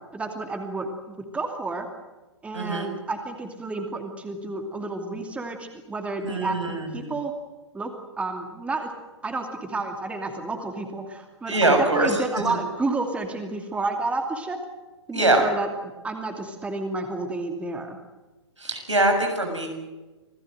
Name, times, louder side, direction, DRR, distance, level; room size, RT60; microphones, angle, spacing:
voice 1, 0.1-1.9 2.4-7.3 7.7-7.9 8.2-8.9 9.2-14.6 15.1-15.7 16.0-18.0, right 3 dB, 10° right, 4 dB, 2.5 m, -30 dB
voice 2, 2.5-2.9 6.2-7.1 11.5-12.2 12.4-12.5 15.1-15.5 18.6-19.7, right 2 dB, 85° right, 3 dB, 7.0 m, -23 dB
27.0 x 17.5 x 7.9 m, 1.2 s
figure-of-eight pair, 120°, 15 cm